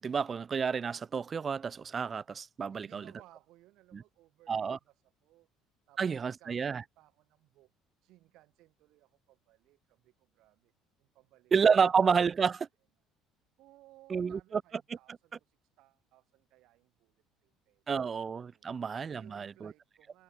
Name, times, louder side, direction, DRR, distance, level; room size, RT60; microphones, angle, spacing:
voice 1, 0.0-3.0 3.9-4.0 4.5-4.8 6.0-6.8 11.5-12.7 14.1-14.6 17.9-19.7, right 6 dB, 30° right, 0.4 m, -29 dB
voice 2, 2.7-5.5 5.9-7.7 8.0-10.7 11.0-11.5 11.8-12.0 12.6-12.7 13.6-18.1 18.5-18.8 19.1-20.2, right 17 dB, 70° right, 2.4 m, -62 dB
cardioid pair, 120°, 0 cm